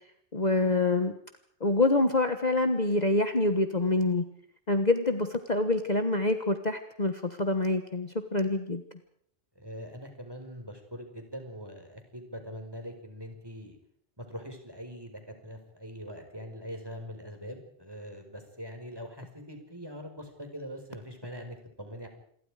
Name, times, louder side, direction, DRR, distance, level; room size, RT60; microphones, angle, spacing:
voice 1, 0.3-1.1 1.6-4.2 4.7-8.8, left 2 dB, 35° left, 7 dB, 1.5 m, -26 dB
voice 2, 9.5-13.8 14.2-22.1, equal, 20° right, 5 dB, 5.0 m, -42 dB
27.5 x 22.5 x 4.9 m, 0.66 s
omnidirectional pair, 1.3 m